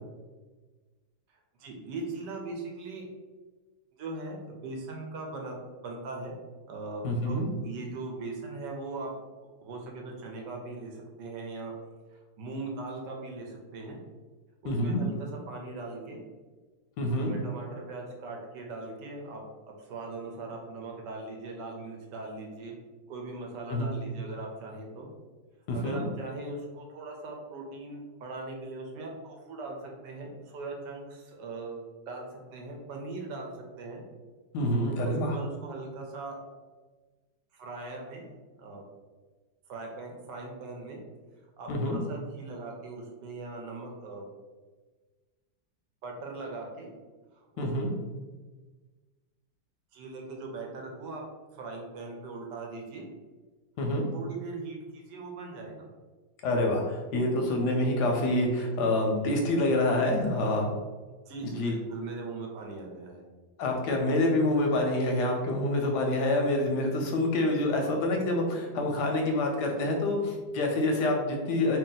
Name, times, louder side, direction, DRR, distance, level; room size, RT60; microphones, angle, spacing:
voice 1, 1.3-3.1 4.0-5.6 5.8-6.3 6.7-9.1 9.6-11.7 12.1-14.0 14.6-16.2 17.1-19.4 19.7-22.8 23.1-25.1 25.7-32.3 32.5-33.5 33.8-34.0 35.0-36.4 37.5-38.2 38.6-38.8 39.7-41.0 41.6-44.3 46.0-46.9 47.3-47.7 49.9-51.2 51.5-53.1 54.1-55.9 61.3-63.2, right 3 dB, 75° right, 0 dB, 1.2 m, -40 dB
voice 2, 7.0-7.5 14.6-15.0 17.0-17.3 23.7-23.9 25.7-26.0 34.5-35.4 41.7-42.0 47.6-47.9 53.8-54.1 56.4-60.7 61.4-61.7 63.6-71.8, left 1 dB, 75° left, 1 dB, 1.0 m, -27 dB
2.9 x 2.7 x 3.8 m, 1.3 s
omnidirectional pair, 2.0 m